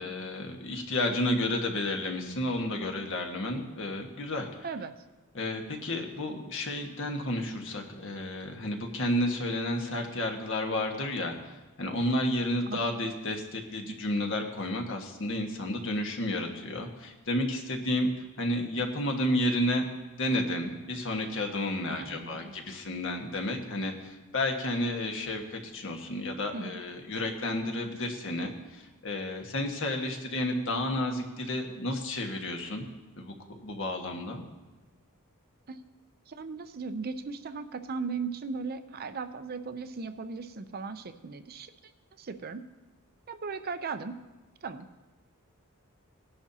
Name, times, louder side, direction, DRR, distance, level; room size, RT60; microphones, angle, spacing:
voice 1, 0.0-4.5 5.3-18.1 18.4-19.8 20.2-32.9 33.2-34.4, left 1 dB, 60° left, 2 dB, 1.5 m, -31 dB
voice 2, 21.9-22.6 26.5-26.8 35.7-35.8 36.3-41.7 42.2-42.6 43.3-44.2 44.6-44.9, right 4 dB, 45° right, 9 dB, 0.6 m, -37 dB
18.5 x 10.5 x 2.8 m, 1.2 s
head